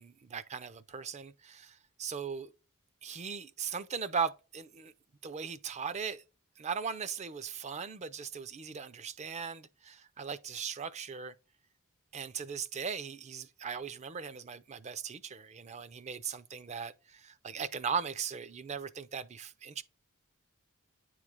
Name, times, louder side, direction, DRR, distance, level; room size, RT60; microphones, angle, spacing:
voice 1, 0.2-2.5 3.0-4.9 5.2-6.2 6.6-11.3 12.1-19.8, right 6 dB, 30° right, 0.4 m, -38 dB
9.5 x 3.2 x 3.5 m
head